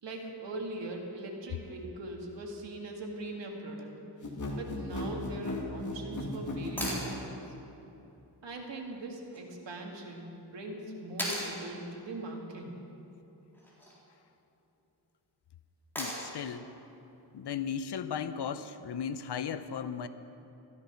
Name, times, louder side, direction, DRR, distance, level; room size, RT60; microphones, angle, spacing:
voice 1, 0.0-4.0 4.6-7.4 8.4-12.8, right 2 dB, 90° right, 1 dB, 2.0 m, -41 dB
sound 1, 4.2-7.0, left 2 dB, 45° left, 2.1 m, -36 dB
sound 2, 6.8-7.1 9.3-9.4 11.2-11.5 13.5-14.0 16.0-16.4 18.6-18.7, equal, 5° left, 3.6 m, -36 dB
voice 2, 16.0-16.7 17.3-20.1, left 7 dB, 70° left, 12 dB, 0.7 m, -36 dB
14.5 x 13.0 x 5.8 m, 2.9 s
wide cardioid pair, 110°, 42 cm